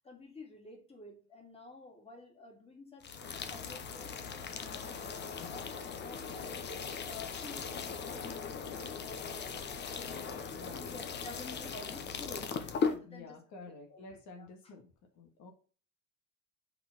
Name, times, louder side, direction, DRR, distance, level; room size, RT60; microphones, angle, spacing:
voice 1, 0.0-9.8 10.1-14.0 14.4-14.7, left 3 dB, 20° left, 1 dB, 2.2 m, -51 dB
sound 1, 3.0-13.0, left 5 dB, 35° left, 0.9 m, -39 dB
voice 2, 10.5-10.9 12.9-14.9 15.2-15.5, left 3 dB, 75° left, 4 dB, 1.8 m, -50 dB
5.5 x 4.5 x 5.7 m, 0.38 s
cardioid pair, 140°, 30 cm